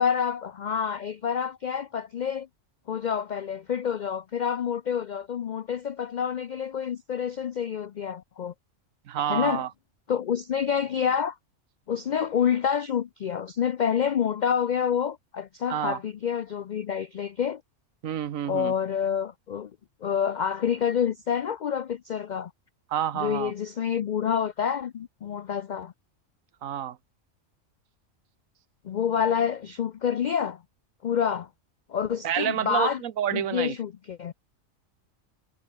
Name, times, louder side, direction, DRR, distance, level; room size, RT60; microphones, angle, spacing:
voice 1, 0.0-2.5 2.9-8.5 9.3-9.6 10.1-11.4 11.9-17.6 18.4-19.7 20.0-22.5 23.1-25.9 28.8-30.6 31.0-31.5 31.9-33.0 33.3-34.3, left 8 dB, 85° left, 0.4 m, -28 dB
voice 2, 9.1-9.7 15.7-16.0 18.0-18.7 22.9-23.5 26.6-27.0 32.2-33.7, right 10 dB, 85° right, 1.3 m, -28 dB
omnidirectional pair, 1.4 m